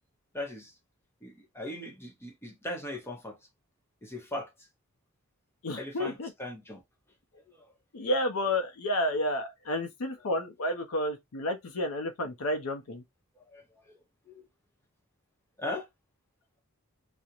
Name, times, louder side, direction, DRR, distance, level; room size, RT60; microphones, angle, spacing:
voice 1, 0.3-0.7 1.2-3.4 4.0-4.5 5.8-6.8 7.5-7.7 13.4-14.4 15.6-15.9, left 1 dB, 10° left, 0.7 m, -39 dB
voice 2, 5.6-6.3 7.9-13.0, left 1 dB, 75° left, 0.5 m, -31 dB
2.4 x 2.0 x 2.8 m
head